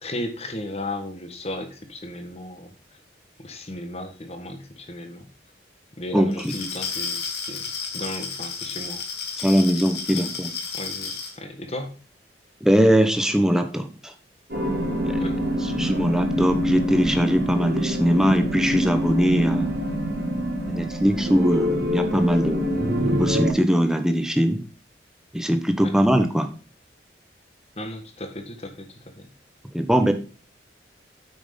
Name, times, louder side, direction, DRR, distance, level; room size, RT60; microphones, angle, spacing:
voice 1, 0.0-2.7 3.4-5.3 6.0-7.6 7.9-9.0 10.1-10.2 10.7-11.9 15.2-15.3 25.8-25.9 27.8-29.3 30.0-30.1, left 1 dB, 35° left, 7 dB, 1.5 m, -35 dB
voice 2, 6.1-6.5 9.4-10.5 12.6-14.1 15.1-15.2 15.6-19.7 20.7-22.7 23.1-24.6 25.3-26.5 29.7-30.1, equal, 5° right, 7 dB, 0.9 m, -21 dB
Glass, 6.3-11.3, left 5 dB, 60° left, 2.1 m, -32 dB
sound 1, 14.5-23.5, equal, 60° right, 2.5 m, -25 dB
8.7 x 6.2 x 5.2 m, 0.37 s
head